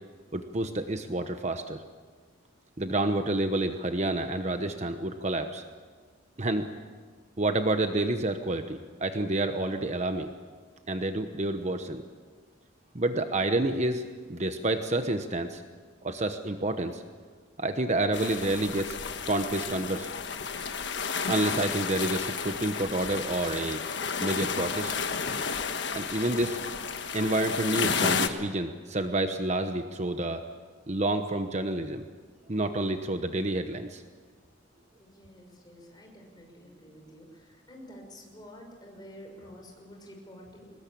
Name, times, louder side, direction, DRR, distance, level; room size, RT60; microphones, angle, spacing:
voice 1, 0.3-1.8 2.8-5.6 6.4-6.7 7.4-10.3 10.9-12.0 12.9-14.0 14.3-15.6 16.0-17.0 17.6-19.0 19.2-20.1 21.3-23.8 24.2-24.9 25.9-26.6 27.1-30.4 30.9-32.0 32.5-34.0, right 2 dB, 35° right, 7 dB, 1.0 m, -29 dB
sound 1, 18.1-28.3, left 5 dB, 60° left, 1.5 m, -32 dB
voice 2, 35.0-40.7, equal, 20° left, 1 dB, 5.9 m, -49 dB
23.0 x 20.5 x 8.7 m, 1.5 s
head